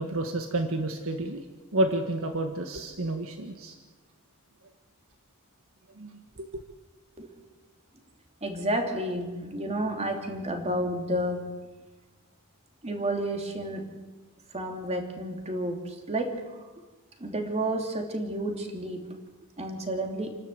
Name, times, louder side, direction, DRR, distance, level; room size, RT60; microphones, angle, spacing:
voice 1, 0.0-1.4 1.7-3.8 6.0-6.6, right 1 dB, 65° right, 5 dB, 1.6 m, -30 dB
voice 2, 8.4-11.5 12.8-14.0 14.5-16.7 17.2-19.2 19.6-20.4, right 1 dB, 30° right, 3 dB, 2.9 m, -31 dB
29.5 x 12.5 x 8.1 m, 1.2 s
head